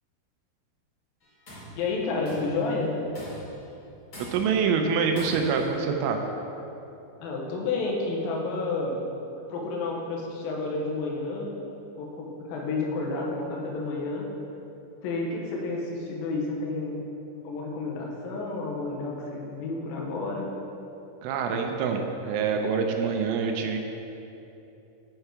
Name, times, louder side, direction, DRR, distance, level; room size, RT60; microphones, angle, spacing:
Tools, 1.2-1.8 2.2-2.6 3.1-3.6 4.1-4.6 5.2-5.7, equal, 50° left, 1.7 m, -42 dB
voice 1, 1.7-2.9 7.2-9.0 9.5-11.5 12.0-14.3 15.0-17.0 17.4-20.5, left 3 dB, 80° left, -2 dB, 2.1 m, -30 dB
voice 2, 4.3-6.2 21.2-23.8, right 5 dB, 85° right, 4 dB, 3.0 m, -26 dB
6.8 x 6.5 x 4.6 m, 2.9 s
omnidirectional pair, 5.5 m